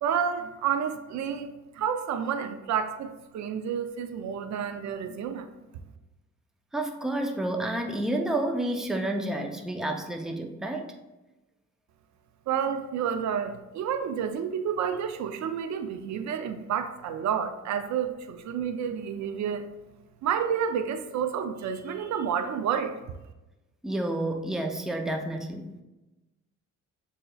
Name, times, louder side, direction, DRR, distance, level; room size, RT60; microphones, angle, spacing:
voice 1, 0.0-5.5 12.5-19.7 20.2-23.0, right 7 dB, 65° right, 8 dB, 0.5 m, -30 dB
voice 2, 6.7-10.9 23.8-25.8, right 1 dB, ahead, 3 dB, 0.5 m, -30 dB
7.6 x 2.8 x 2.3 m, 1.0 s
cardioid pair, 90°, 30 cm